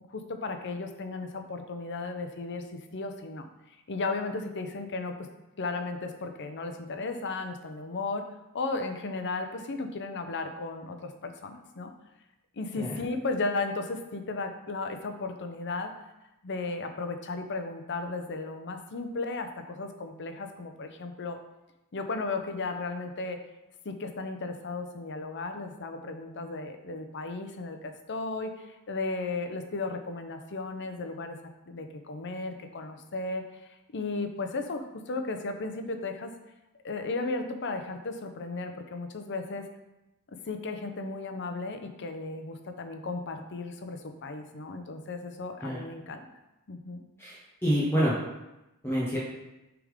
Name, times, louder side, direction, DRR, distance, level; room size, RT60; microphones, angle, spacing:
voice 1, 0.1-3.5 3.9-5.3 5.6-8.2 8.5-11.9 12.6-15.9 16.4-21.4 21.9-23.4 23.8-31.4 31.7-33.4 33.9-36.3 36.8-39.7 40.5-46.3 46.7-47.0, left 3 dB, 55° left, 6 dB, 0.7 m, -35 dB
voice 2, 47.2-48.1 48.8-49.2, equal, 10° left, -7 dB, 1.1 m, -27 dB
6.8 x 3.6 x 5.0 m, 0.96 s
head